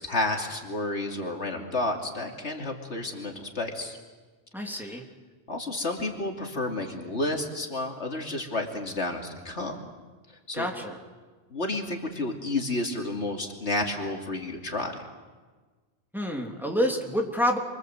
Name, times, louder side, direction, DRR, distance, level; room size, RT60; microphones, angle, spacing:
voice 1, 0.0-4.0 4.6-5.0 5.5-9.8 10.5-10.7 11.5-15.0, left 2 dB, 80° left, 2 dB, 3.1 m, -31 dB
voice 2, 4.5-5.0 10.5-11.0 16.1-17.6, equal, ahead, 0 dB, 3.1 m, -28 dB
28.5 x 24.5 x 7.9 m, 1.4 s
omnidirectional pair, 1.1 m